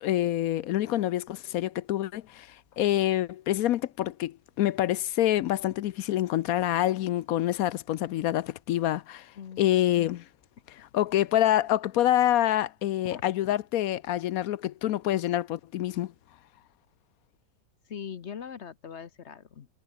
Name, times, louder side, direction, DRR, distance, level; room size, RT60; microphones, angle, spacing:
voice 1, 0.0-9.3 9.6-10.2 10.7-16.1, left 13 dB, 70° left, 0.9 m, -26 dB
voice 2, 9.4-9.7 13.1-13.2 17.9-19.7, left 7 dB, 50° left, 1.0 m, -41 dB
omnidirectional pair, 1.8 m